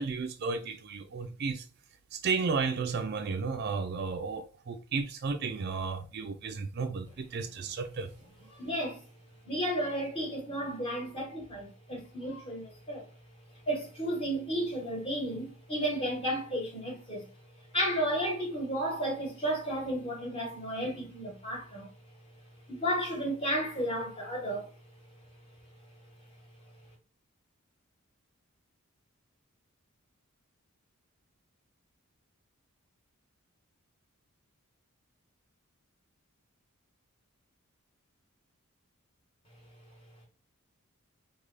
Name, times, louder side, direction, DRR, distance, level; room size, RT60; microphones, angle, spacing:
voice 1, 0.0-1.7 2.1-8.1 8.4-8.5, right 4 dB, 50° right, 0.4 m, -33 dB
voice 2, 8.5-9.0 9.4-13.0 13.7-17.3 17.7-21.9 22.7-24.7, equal, 25° left, 1.2 m, -33 dB
3.2 x 2.3 x 3.6 m
head